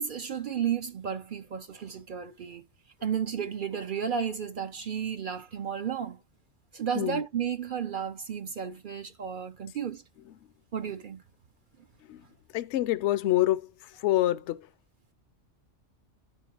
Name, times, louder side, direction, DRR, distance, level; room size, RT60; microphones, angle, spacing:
voice 1, 0.0-2.6 3.0-6.2 6.7-10.0 10.7-11.2, right 8 dB, 55° right, 0.6 m, -33 dB
voice 2, 12.5-14.7, left 14 dB, 65° left, 0.8 m, -27 dB
12.5 x 4.6 x 2.9 m
omnidirectional pair, 1.3 m